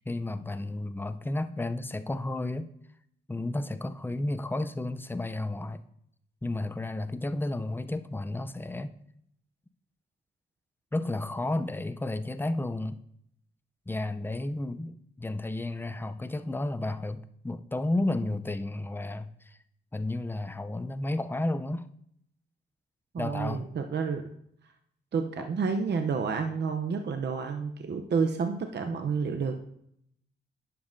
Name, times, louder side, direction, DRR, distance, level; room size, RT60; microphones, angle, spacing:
voice 1, 0.1-2.7 3.3-5.8 6.4-8.9 10.9-13.0 13.9-19.6 19.9-21.9 23.2-23.7, left 2 dB, 10° left, 10 dB, 0.5 m, -32 dB
voice 2, 23.1-24.3 25.1-29.6, right 5 dB, 55° right, 5 dB, 0.7 m, -30 dB
10.5 x 7.1 x 2.7 m, 0.71 s
cardioid pair, 60°, 21 cm